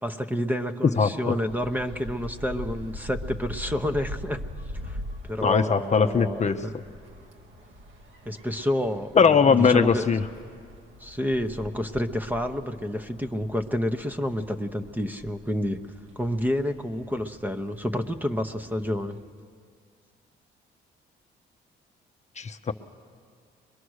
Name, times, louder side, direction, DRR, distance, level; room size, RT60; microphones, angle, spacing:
voice 1, 0.0-4.4 4.8-5.0 5.2-6.8 8.3-9.1 9.5-10.0 11.0-15.8 16.2-19.2, equal, 10° right, 9 dB, 0.9 m, -29 dB
voice 2, 1.0-1.3 5.4-6.6 9.2-10.2 22.4-22.7, left 6 dB, 35° left, 7 dB, 0.7 m, -20 dB
sound 1, 1.5-19.2, equal, 75° right, 2.4 m, -43 dB
22.0 x 22.0 x 6.4 m, 2.1 s
cardioid pair, 90°, 20 cm